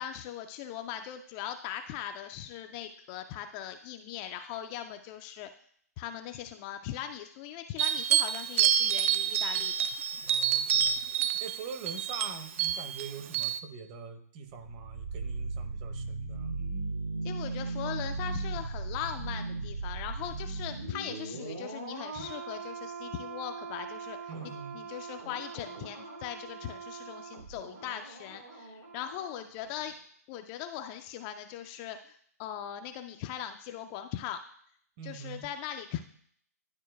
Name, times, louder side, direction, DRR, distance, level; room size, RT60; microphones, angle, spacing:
voice 1, 0.0-5.5 6.0-9.9 17.2-29.9 30.3-34.4 35.0-36.0, left 10 dB, 25° left, 7 dB, 0.3 m, -40 dB
sound 1, 7.8-13.6, right 9 dB, 50° right, 0.4 m, -28 dB
voice 2, 10.3-16.8 24.3-24.8 35.0-35.5, right 6 dB, 30° right, 7 dB, 0.8 m, -44 dB
sound 2, 14.5-29.4 29.7-29.9, right 3 dB, 80° right, 2.5 m, -38 dB
11.0 x 4.3 x 2.3 m, 0.63 s
hypercardioid pair, 135°, 9 cm